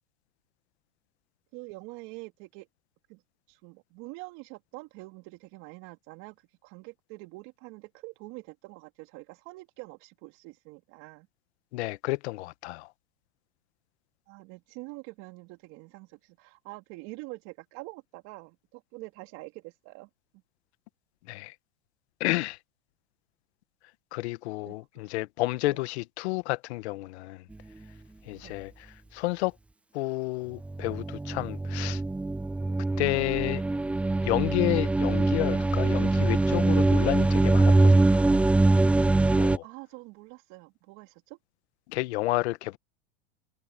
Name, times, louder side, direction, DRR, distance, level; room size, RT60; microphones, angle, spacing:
voice 1, 1.5-2.7 3.1-3.2 3.5-6.3 6.6-11.3 14.3-20.1 24.7-24.8 25.7-25.8 28.4-28.6 39.6-41.4, right 24 dB, 55° right, 3.3 m, -45 dB
voice 2, 11.7-12.9 21.3-21.5 22.2-22.6 24.1-27.4 28.2-29.5 29.9-32.0 33.0-33.6 34.2-38.4 39.3-39.6 41.9-42.8, left 20 dB, 70° left, 1.4 m, -31 dB
sound 1, 30.6-39.6, right 2 dB, 5° right, 0.3 m, -23 dB
supercardioid pair, 120°, 34 cm